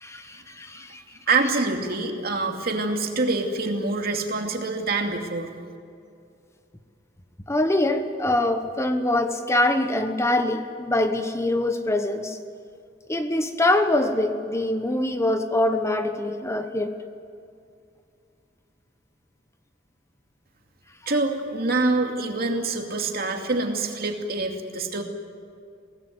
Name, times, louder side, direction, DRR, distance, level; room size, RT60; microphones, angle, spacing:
voice 1, 0.0-1.2 7.5-12.4 13.1-16.9, left 1 dB, 15° left, 7 dB, 1.1 m, -24 dB
voice 2, 1.3-5.5 21.1-25.0, right 3 dB, 55° right, 3 dB, 2.6 m, -25 dB
23.5 x 18.0 x 9.5 m, 2.4 s
head